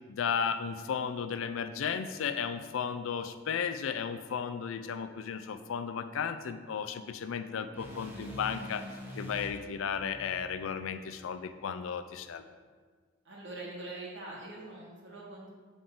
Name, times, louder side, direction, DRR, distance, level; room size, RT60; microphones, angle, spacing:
voice 1, 0.1-8.8 9.2-12.4, left 7 dB, 75° left, 10 dB, 0.4 m, -34 dB
sound 1, 7.7-11.9, equal, 10° right, 0.9 m, -46 dB
voice 2, 13.2-15.5, right 2 dB, 65° right, -3 dB, 1.4 m, -43 dB
6.8 x 3.7 x 3.8 m, 1.5 s
head